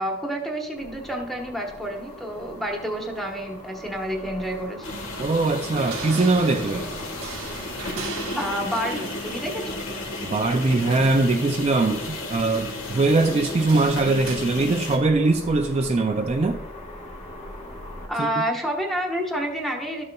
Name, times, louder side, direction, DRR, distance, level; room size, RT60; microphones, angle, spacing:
voice 1, 0.0-4.9 8.3-9.8 18.1-20.0, equal, ahead, 0 dB, 1.1 m, -29 dB
sound 1, 0.7-18.1, left 1 dB, 35° left, 1.3 m, -42 dB
sound 2, 1.7-14.4, right 5 dB, 80° right, 1.0 m, -41 dB
sound 3, 4.8-15.0, left 2 dB, 70° left, 1.4 m, -33 dB
voice 2, 5.2-6.9 10.2-16.6 18.2-18.3, right 3 dB, 30° right, 5 dB, 0.3 m, -22 dB
12.5 x 6.5 x 2.3 m, 1.0 s
head